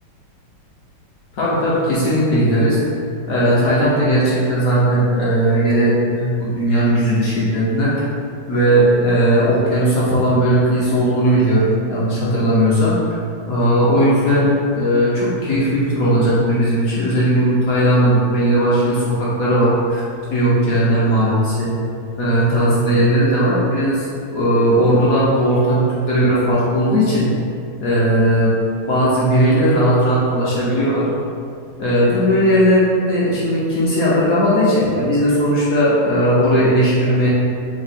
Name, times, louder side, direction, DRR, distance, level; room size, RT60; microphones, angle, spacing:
voice 1, 1.3-2.8 3.3-7.9 8.5-12.9 13.5-14.5 14.7-20.0 20.3-21.7 22.2-24.1 24.3-27.3 27.8-28.5 28.9-31.0 31.8-37.3, equal, 65° left, -8 dB, 0.9 m, -17 dB
3.5 x 3.2 x 4.1 m, 2.5 s
omnidirectional pair, 2.2 m